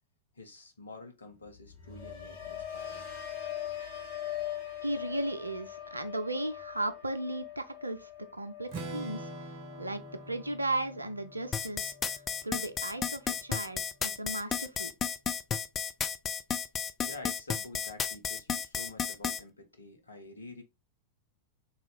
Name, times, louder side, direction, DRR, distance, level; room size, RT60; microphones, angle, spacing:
voice 1, 0.3-3.1 17.0-20.6, left 3 dB, 75° left, 0.8 m, -48 dB
sound 1, 1.5-11.6 11.9-12.4, left 11 dB, 50° left, 1.0 m, -42 dB
voice 2, 4.8-8.1 8.4-9.3 9.8-11.9 12.4-14.9, right 2 dB, 85° right, 0.5 m, -35 dB
Strum, 8.7-12.6, right 2 dB, 40° right, 0.8 m, -45 dB
sound 2, 11.5-19.4, left 7 dB, 20° left, 0.3 m, -32 dB
3.7 x 2.4 x 3.3 m
figure-of-eight pair, 90°, 0 cm